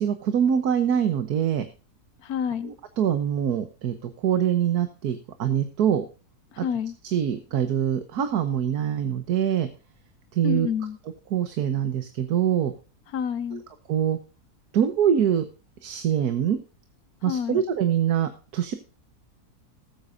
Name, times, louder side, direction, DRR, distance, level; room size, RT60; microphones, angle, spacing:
voice 1, 0.0-1.6 2.6-6.0 6.6-6.7 7.0-9.7 10.3-10.7 11.3-12.7 13.5-13.6 13.9-14.2 14.7-15.4 15.8-16.6 17.2-18.7, right 9 dB, 85° right, 1.6 m, -24 dB
voice 2, 2.2-2.7 6.5-7.0 10.4-11.0 13.1-13.6 17.3-17.6, left 8 dB, 80° left, 1.3 m, -28 dB
19.5 x 8.7 x 2.6 m
omnidirectional pair, 1.6 m